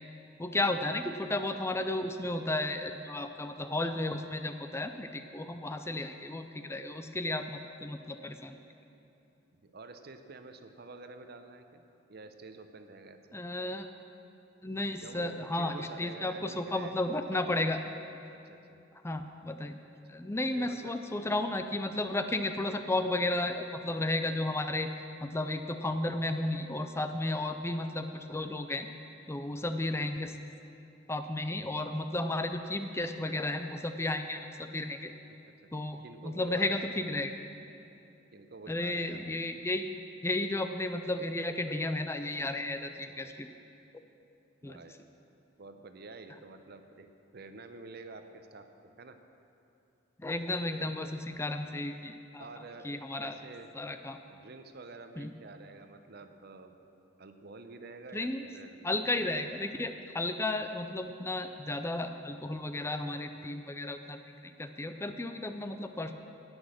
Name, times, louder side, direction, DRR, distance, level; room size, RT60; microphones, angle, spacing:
voice 1, 0.4-8.6 13.3-13.9 14.6-17.8 19.0-19.8 20.1-24.9 25.2-28.9 29.3-30.3 31.1-35.1 35.7-37.3 38.7-43.5 44.6-44.8 50.2-52.5 52.8-53.4 53.7-54.2 55.2-55.3 58.1-58.4 58.8-66.1, left 2 dB, 15° left, 8 dB, 0.5 m, -33 dB
voice 2, 9.6-11.8 12.1-13.2 15.0-17.4 18.3-18.8 20.1-20.2 20.5-20.9 35.4-35.5 36.0-36.9 38.3-39.2 43.1-43.2 44.2-44.3 44.6-45.0 45.6-47.1 47.3-49.2 50.8-50.9 52.4-53.7 54.3-56.7 57.2-59.0, right 3 dB, 60° right, 8 dB, 0.7 m, -48 dB
18.5 x 6.3 x 6.3 m, 2.7 s
head